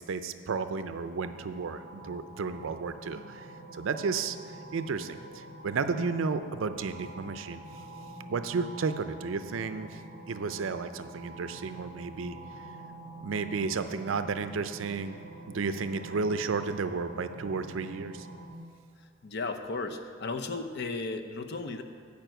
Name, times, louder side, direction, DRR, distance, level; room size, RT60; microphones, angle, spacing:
voice 1, 0.0-3.5 3.7-7.6 8.3-10.0 10.3-12.4 13.2-15.2 15.5-18.3, right 4 dB, 65° right, 11 dB, 0.4 m, -33 dB
sound 1, 0.8-18.5, right 1 dB, 90° left, 2.1 m, -46 dB
voice 2, 19.2-21.8, left 3 dB, 55° left, 7 dB, 0.6 m, -35 dB
9.0 x 5.3 x 7.9 m, 2.1 s
head